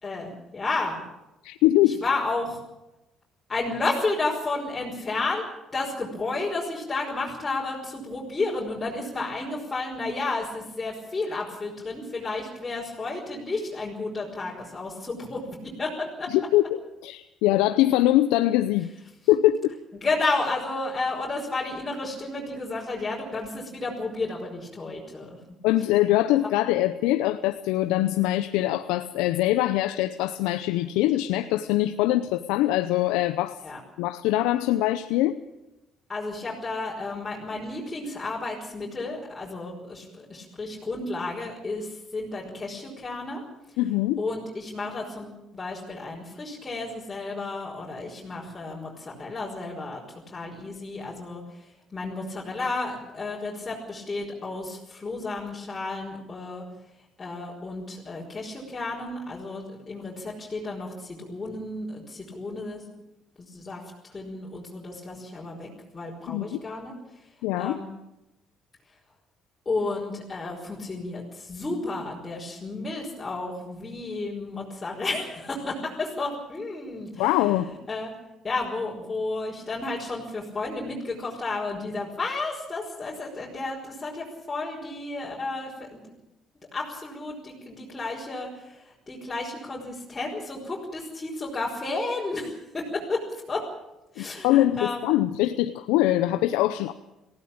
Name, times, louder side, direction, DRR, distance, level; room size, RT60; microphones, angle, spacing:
voice 1, 0.0-1.0 1.8-2.6 3.5-5.4 5.7-16.3 20.0-25.4 33.6-33.8 36.1-43.4 44.2-56.6 57.2-62.8 63.4-66.9 67.6-67.9 69.7-78.1 78.4-86.0 86.7-93.6 94.1-95.0, left 3 dB, 25° left, -4 dB, 5.4 m, -32 dB
voice 2, 1.4-2.0 16.3-18.9 19.3-19.7 25.6-33.6 34.0-35.4 43.8-44.2 66.3-66.6 67.4-67.8 77.1-77.7 94.2-96.9, left 14 dB, 85° left, 11 dB, 0.7 m, -23 dB
19.0 x 16.0 x 8.8 m, 0.95 s
supercardioid pair, 80°, 0 cm